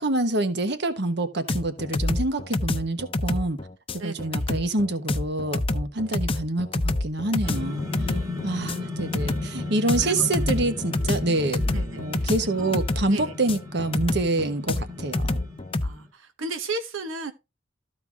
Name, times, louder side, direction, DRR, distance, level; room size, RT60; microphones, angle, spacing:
voice 1, 0.0-3.6 4.0-7.8 8.4-11.6 12.0-15.4, right 2 dB, 60° right, 1.3 m, -26 dB
sound 1, 1.5-15.9, left 2 dB, 30° left, 0.7 m, -28 dB
voice 2, 4.0-4.5 5.9-6.0 8.1-8.3 8.9-9.1 10.0-10.3 11.7-12.3 12.6-12.7 13.1-13.3 15.8-17.3, right 3 dB, 85° right, 1.0 m, -35 dB
sound 2, 7.4-16.1, left 2 dB, 15° right, 1.6 m, -35 dB
13.5 x 4.6 x 3.5 m
head